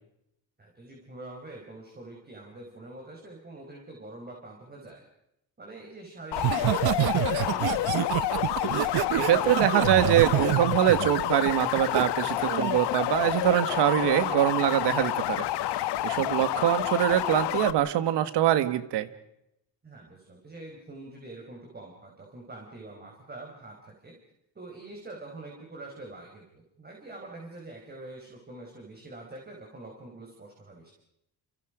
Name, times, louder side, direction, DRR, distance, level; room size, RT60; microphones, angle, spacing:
voice 1, 0.6-5.0 5.6-8.1 16.2-16.5 19.8-24.2 24.5-30.9, right 2 dB, 25° right, 0 dB, 4.9 m, -45 dB
sound 1, 6.3-17.7, left 14 dB, 90° left, 1.2 m, -29 dB
Laughter, 6.4-12.0 12.5-12.8, right 15 dB, 65° right, 0.9 m, -28 dB
voice 2, 9.1-15.4 15.8-19.1, right 12 dB, 85° right, 12 dB, 1.8 m, -24 dB
29.5 x 27.5 x 5.1 m, 0.81 s
cardioid pair, 125°, 40 cm